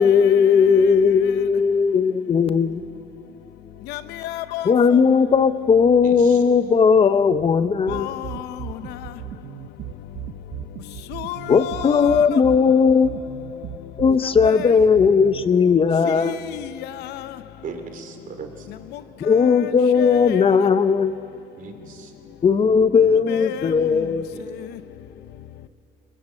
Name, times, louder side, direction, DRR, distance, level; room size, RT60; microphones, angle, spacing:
voice 1, 0.0-2.8 4.7-8.1 11.5-13.1 14.0-16.3 19.2-21.1 22.4-24.3, left 6 dB, 35° left, 0.7 m, -17 dB
voice 2, 3.9-5.0 7.9-8.5 11.1-12.4 14.4-14.7 16.1-16.2 16.4-16.7 17.0-17.3 19.3-19.7 20.0-20.4 23.3-23.7, left 13 dB, 85° left, 0.8 m, -32 dB
voice 3, 6.0-6.4 14.8-14.9 17.6-18.7 21.5-22.1 23.0-23.3 24.3-24.4, right 5 dB, 55° right, 3.0 m, -38 dB
sound 1, 7.9-15.4, right 14 dB, 75° right, 0.8 m, -36 dB
21.0 x 21.0 x 7.6 m
cardioid pair, 110°, 17 cm